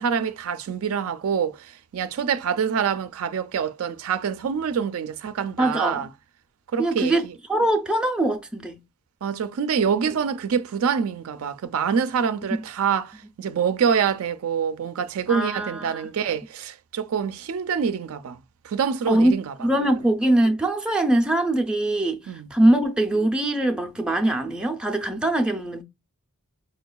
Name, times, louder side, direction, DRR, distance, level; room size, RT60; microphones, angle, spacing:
voice 1, 0.0-6.1 6.7-7.3 9.2-18.4 18.6-19.5 22.3-22.5, right 7 dB, 75° right, 0.4 m, -26 dB
voice 2, 5.6-6.1 6.8-8.8 12.5-12.6 15.3-16.3 19.1-19.3 19.6-22.2 22.5-25.8, right 1 dB, 5° right, 0.4 m, -22 dB
5.2 x 2.2 x 2.2 m
head